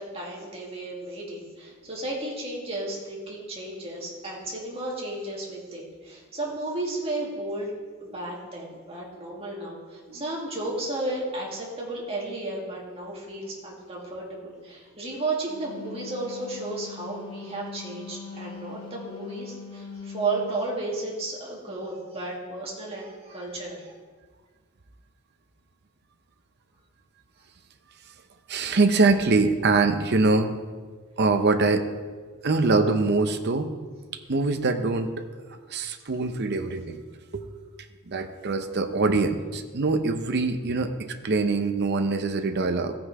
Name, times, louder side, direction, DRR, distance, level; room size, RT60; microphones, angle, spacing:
voice 1, 0.0-7.7 8.0-24.0, right 2 dB, 30° right, -4 dB, 2.2 m, -33 dB
Wind instrument woodwind instrument, 15.3-20.6, left 5 dB, 25° left, 1.5 m, -41 dB
voice 2, 28.5-30.5 31.2-31.9 32.4-33.8 34.3-35.1 35.7-37.0 37.3-37.5 38.1-42.9, right 3 dB, 50° right, 7 dB, 0.7 m, -23 dB
14.5 x 5.8 x 4.8 m, 1.5 s
head